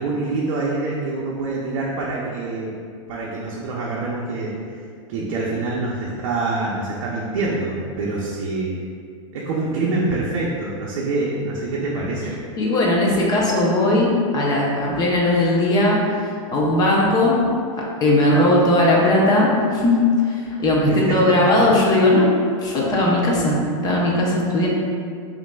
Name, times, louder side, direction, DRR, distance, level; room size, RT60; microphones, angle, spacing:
voice 1, 0.0-2.7 3.1-4.8 5.1-8.7 9.3-12.4 20.9-21.9, right 3 dB, 60° right, -4 dB, 0.6 m, -25 dB
voice 2, 12.6-16.0 16.5-17.4 17.8-22.3 22.6-23.6 23.8-24.7, left 1 dB, 25° left, -3 dB, 0.6 m, -18 dB
5.7 x 2.6 x 2.2 m, 2.2 s
supercardioid pair, 140°, 17 cm